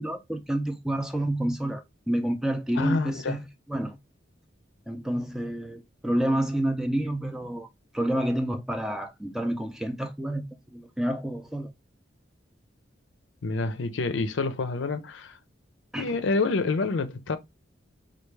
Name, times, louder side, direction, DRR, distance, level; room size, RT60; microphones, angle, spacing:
voice 1, 0.0-3.4 3.7-4.0 4.9-7.7 7.9-10.5 10.7-11.7 15.9-16.1, right 1 dB, 5° right, 0.4 m, -29 dB
voice 2, 2.7-3.4 13.4-15.4 16.0-17.4, left 3 dB, 80° left, 0.5 m, -27 dB
4.6 x 2.4 x 3.2 m
head